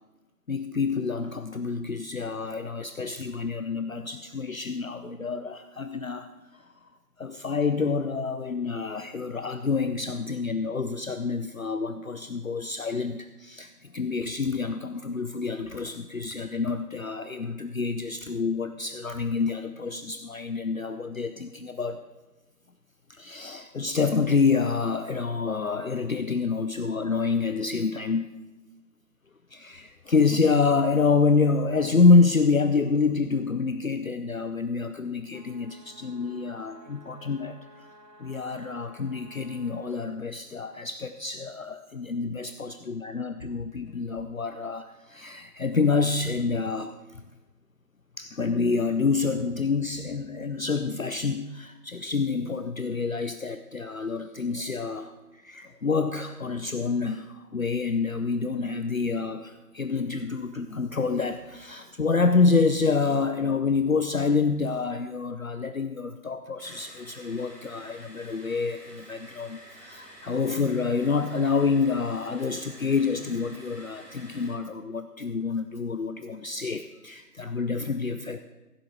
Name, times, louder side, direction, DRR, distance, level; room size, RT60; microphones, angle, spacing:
voice 1, 0.5-6.6 7.2-22.0 23.1-28.3 29.5-37.6 38.2-46.9 48.2-78.4, left 4 dB, 55° left, 9 dB, 0.7 m, -27 dB
sound 1, 35.3-40.1, equal, 80° right, 1.5 m, -54 dB
sound 2, 66.6-74.6, equal, 10° left, 1.4 m, -49 dB
15.0 x 9.5 x 4.7 m, 1.1 s
figure-of-eight pair, 160°, 48 cm